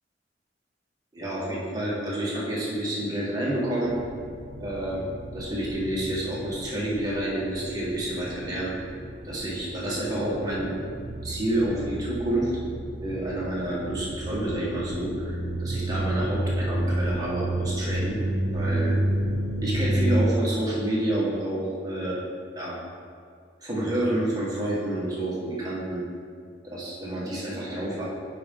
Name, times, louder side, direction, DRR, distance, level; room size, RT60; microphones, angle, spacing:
voice 1, 1.1-3.9 4.6-5.0 5.3-8.7 9.2-10.7 11.2-12.5 13.0-18.2 18.5-19.0 19.6-22.2 22.6-22.8 23.6-26.0 26.6-28.0, right 1 dB, 20° right, -6 dB, 1.7 m, -29 dB
sound 1, 3.8-20.3, right 1 dB, 65° right, 1.1 m, -31 dB
9.2 x 5.1 x 3.8 m, 2.2 s
head